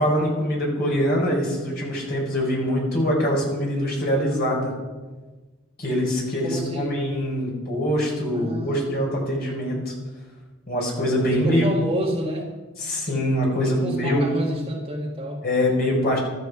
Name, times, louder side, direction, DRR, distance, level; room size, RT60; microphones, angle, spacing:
voice 1, 0.0-4.7 5.8-9.9 10.7-11.7 12.8-14.2 15.4-16.2, equal, 45° left, -2 dB, 4.8 m, -23 dB
voice 2, 6.4-7.0 8.3-9.1 9.7-9.8 11.3-12.6 13.6-15.4, right 1 dB, 25° right, -1 dB, 1.9 m, -29 dB
15.0 x 12.5 x 4.9 m, 1.3 s
head